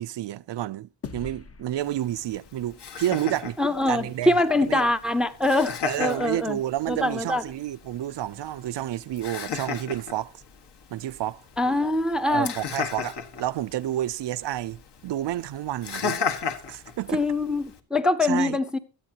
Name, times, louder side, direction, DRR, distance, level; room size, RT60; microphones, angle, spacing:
voice 1, 0.0-3.6 3.9-4.9 5.8-10.3 10.9-11.4 12.3-16.2 16.7-17.2 18.2-18.6, right 13 dB, 65° right, 0.6 m, -30 dB
sound 1, 1.0-3.6, left 5 dB, 30° left, 0.9 m, -43 dB
Laughter, 1.8-17.8, left 6 dB, 60° left, 1.6 m, -36 dB
voice 2, 3.6-6.6 6.9-7.4 11.6-12.5 17.1-18.8, left 2 dB, ahead, 0.6 m, -24 dB
23.5 x 8.7 x 2.8 m
wide cardioid pair, 155°, 46 cm